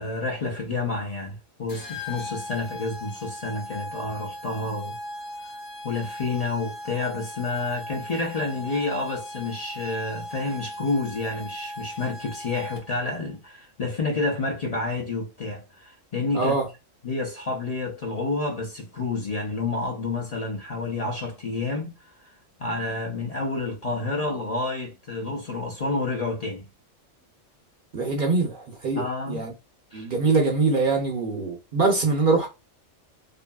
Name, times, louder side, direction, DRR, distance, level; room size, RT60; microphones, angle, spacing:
voice 1, 0.0-5.0 5.4-5.5 5.8-16.6 17.0-21.9 22.6-26.6 29.0-29.5 29.9-30.1, left 3 dB, 40° left, 0.6 m, -29 dB
sound 1, 1.7-13.1, left 1 dB, 85° left, 1.2 m, -38 dB
voice 2, 16.3-16.7 27.9-29.5 29.9-32.5, right 3 dB, 55° right, 0.6 m, -23 dB
2.7 x 2.6 x 2.2 m
omnidirectional pair, 1.3 m